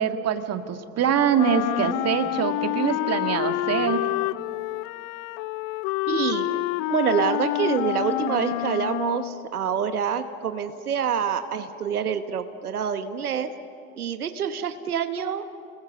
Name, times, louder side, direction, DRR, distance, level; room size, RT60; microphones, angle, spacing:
voice 1, 0.0-4.1, right 8 dB, 35° right, 8 dB, 1.9 m, -24 dB
Wind instrument woodwind instrument, 1.3-9.5, left 21 dB, 40° left, 0.5 m, -28 dB
voice 2, 6.1-6.6 6.9-13.5 14.0-15.4, right 7 dB, 85° right, 9 dB, 1.2 m, -26 dB
30.0 x 21.0 x 6.9 m, 2.5 s
hypercardioid pair, 85°, 44 cm